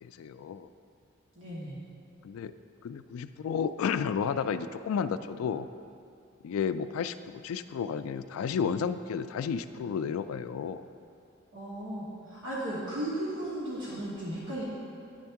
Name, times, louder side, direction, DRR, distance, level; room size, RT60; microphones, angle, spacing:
voice 1, 0.0-0.7 2.2-2.5 2.8-5.7 6.4-10.8, left 6 dB, 85° left, 12 dB, 0.3 m, -32 dB
voice 2, 1.3-1.8 11.5-14.6, right 1 dB, 70° right, -7 dB, 1.2 m, -35 dB
10.0 x 3.5 x 5.8 m, 2.5 s
head